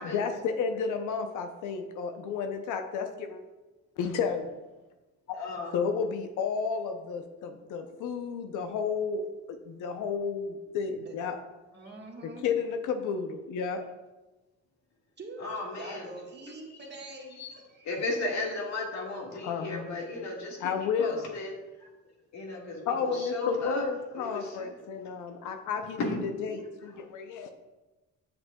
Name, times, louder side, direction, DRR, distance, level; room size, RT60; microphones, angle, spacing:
voice 1, 0.0-3.4 4.0-4.5 5.7-9.2 9.7-11.4 12.2-13.8 19.4-19.9 20.6-21.2 22.9-27.5, left 6 dB, 85° left, 6 dB, 0.7 m, -32 dB
voice 2, 5.3-5.7 15.4-16.1 17.4-17.5 17.8-21.5 22.3-23.8 24.1-24.7 26.0-26.2, left 2 dB, 65° left, -1 dB, 1.8 m, -35 dB
voice 3, 11.7-12.5 15.2-15.5 15.7-18.1, right 2 dB, 35° right, 0 dB, 1.4 m, -45 dB
7.8 x 6.9 x 2.3 m, 1.1 s
cardioid pair, 90°, 30 cm